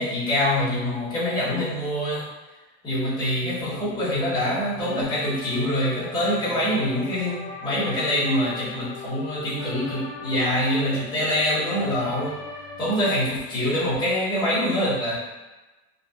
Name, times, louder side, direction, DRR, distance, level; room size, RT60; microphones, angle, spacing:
voice 1, 0.0-2.2 2.8-12.3 12.8-15.2, left 1 dB, 10° left, -10 dB, 0.8 m, -25 dB
sound 1, 3.6-13.1, left 3 dB, 50° left, 0.5 m, -39 dB
2.6 x 2.3 x 2.3 m, 1.1 s
cardioid pair, 165°, 37 cm